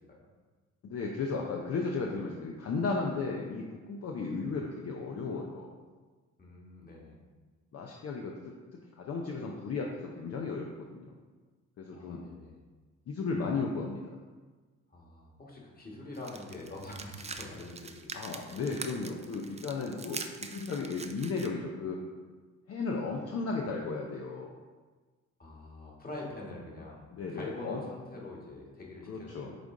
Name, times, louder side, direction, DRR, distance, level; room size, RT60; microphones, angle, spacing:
voice 1, 0.8-5.8 7.7-8.5 8.9-10.6 10.9-11.1 11.8-12.2 13.1-14.1 18.1-22.0 22.7-24.5 27.1-27.8 29.1-29.6, left 4 dB, 55° left, 0 dB, 0.7 m, -35 dB
voice 2, 6.4-7.2 11.9-12.6 14.9-18.1 18.4-18.6 25.4-29.5, left 2 dB, 30° left, -3 dB, 1.6 m, -45 dB
sound 1, 16.1-21.5, right 4 dB, 20° right, 0.4 m, -43 dB
6.7 x 3.8 x 3.8 m, 1.4 s
cardioid pair, 90°, 30 cm